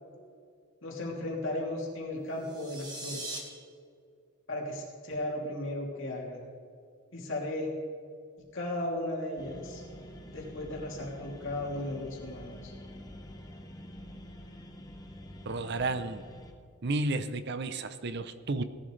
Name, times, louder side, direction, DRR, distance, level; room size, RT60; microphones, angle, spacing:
voice 1, 0.8-3.4 4.5-6.4 7.1-7.7 8.5-9.8 10.3-12.7, left 1 dB, 60° left, -2 dB, 3.0 m, -35 dB
sound 1, 2.3-3.4, right 2 dB, 20° right, 1.7 m, -40 dB
sound 2, 9.4-16.5, equal, 15° left, 0.9 m, -47 dB
voice 2, 15.5-16.2 16.8-18.6, right 2 dB, 50° right, 11 dB, 0.6 m, -32 dB
17.5 x 11.0 x 3.3 m, 2.3 s
head